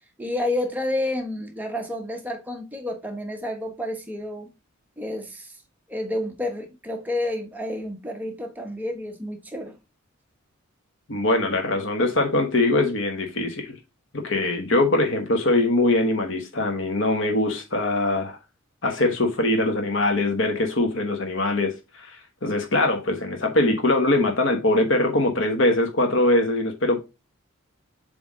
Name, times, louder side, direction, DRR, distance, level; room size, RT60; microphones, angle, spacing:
voice 1, 0.2-4.5 5.0-5.5 5.9-9.8, left 1 dB, 10° right, 1.0 m, -30 dB
voice 2, 11.1-13.7 14.1-18.4 18.8-22.1 22.4-27.0, left 2 dB, 60° left, 1.2 m, -22 dB
7.3 x 3.4 x 3.7 m
head